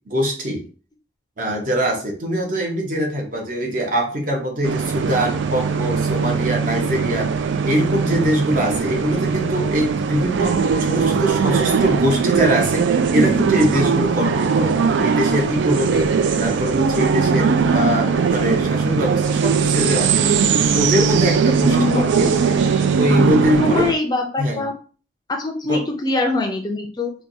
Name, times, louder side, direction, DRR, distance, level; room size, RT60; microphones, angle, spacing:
voice 1, 0.1-0.7 1.4-7.3 7.6-16.1 16.4-20.1 20.6-22.3 23.0-23.9 24.4-24.7 25.7-25.8, equal, 45° right, 1 dB, 0.9 m, -22 dB
sound 1, 4.6-23.9, right 6 dB, 85° right, 0.3 m, -19 dB
voice 2, 21.6-22.3 23.6-24.7 25.3-27.1, left 2 dB, 20° left, 2 dB, 0.4 m, -23 dB
4.4 x 2.2 x 2.6 m, 0.39 s
head